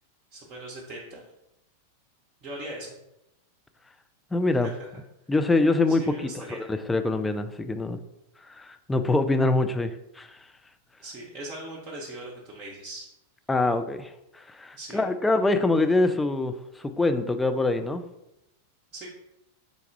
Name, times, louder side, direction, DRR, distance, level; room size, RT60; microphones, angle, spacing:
voice 1, 0.3-1.3 2.4-3.0 4.6-4.7 5.9-6.7 11.0-13.1 14.7-15.0 18.9-19.1, right 1 dB, 30° right, -4 dB, 0.9 m, -40 dB
voice 2, 4.3-4.7 5.3-8.0 8.5-10.4 13.5-18.0, left 2 dB, 10° left, 7 dB, 0.3 m, -25 dB
4.0 x 2.3 x 4.6 m, 0.86 s
figure-of-eight pair, 90°, 0 cm